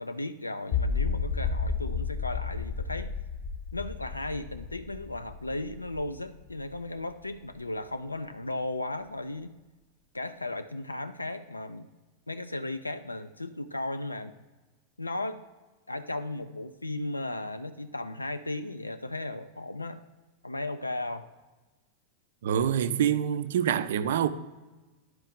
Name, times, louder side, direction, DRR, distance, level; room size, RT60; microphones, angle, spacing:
voice 1, 0.0-3.1 3.7-9.6 10.1-11.9 12.3-14.3 15.0-15.5 15.9-20.0 20.4-21.3, left 2 dB, 85° left, 0.3 m, -35 dB
sound 1, 0.7-6.8, left 5 dB, 35° left, 0.7 m, -32 dB
voice 2, 22.4-24.3, right 9 dB, 60° right, 0.4 m, -26 dB
10.5 x 4.5 x 3.6 m
figure-of-eight pair, 90°, 0 cm